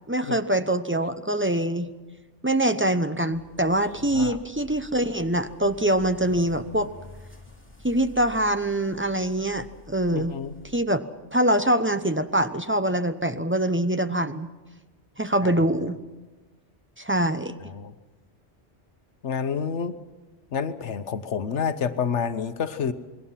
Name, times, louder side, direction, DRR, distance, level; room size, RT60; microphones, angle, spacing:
voice 1, 0.1-1.9 2.4-6.9 7.8-10.3 10.7-11.0 11.3-14.5 15.2-16.0 17.0-17.5, right 1 dB, 15° right, 10 dB, 0.7 m, -24 dB
sound 1, 3.3-10.8, left 2 dB, 10° left, 3.6 m, -48 dB
voice 2, 10.1-10.5 15.4-15.5 17.7-17.9 19.2-19.9 20.5-22.9, left 6 dB, 75° left, 10 dB, 1.3 m, -28 dB
28.0 x 21.0 x 5.8 m, 1.2 s
omnidirectional pair, 1.2 m